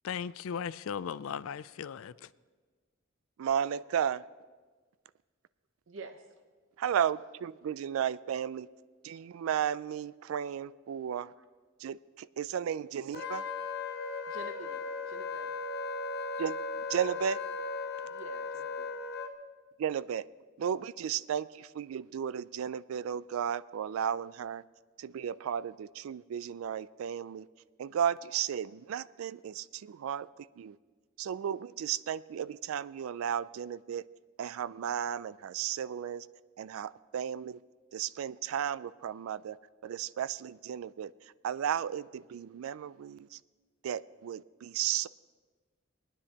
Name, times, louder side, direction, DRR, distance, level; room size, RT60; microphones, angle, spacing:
voice 1, 0.0-2.1, left 7 dB, 80° left, 0.4 m, -37 dB
voice 2, 3.4-4.3 6.8-8.7 9.0-11.3 11.8-13.4 16.4-16.6 16.9-17.4 19.8-20.3 20.6-24.6 25.0-27.5 27.8-30.8 31.2-34.0 34.4-36.3 36.6-37.6 37.9-39.6 39.8-43.4 43.8-45.1, right 8 dB, 85° right, 0.3 m, -34 dB
voice 3, 5.9-6.3 11.4-11.5 14.3-15.5 18.0-18.9, right 3 dB, 65° right, 0.7 m, -47 dB
Wind instrument woodwind instrument, 13.1-19.3, left 4 dB, 50° left, 0.8 m, -37 dB
23.0 x 9.8 x 2.9 m
head